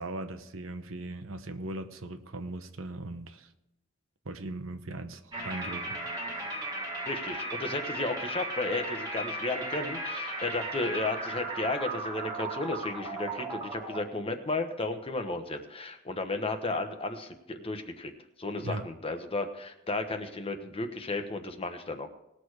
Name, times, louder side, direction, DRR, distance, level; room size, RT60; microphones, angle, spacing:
voice 1, 0.0-3.5 4.2-6.0 6.3-6.5 18.6-18.8, right 2 dB, 80° right, 9 dB, 0.9 m, -39 dB
sound 1, 5.3-14.0, right 2 dB, 20° right, 1.8 m, -36 dB
voice 2, 7.0-18.1 18.4-22.1, left 2 dB, 25° left, 6 dB, 1.1 m, -33 dB
19.0 x 6.6 x 4.8 m, 0.86 s
head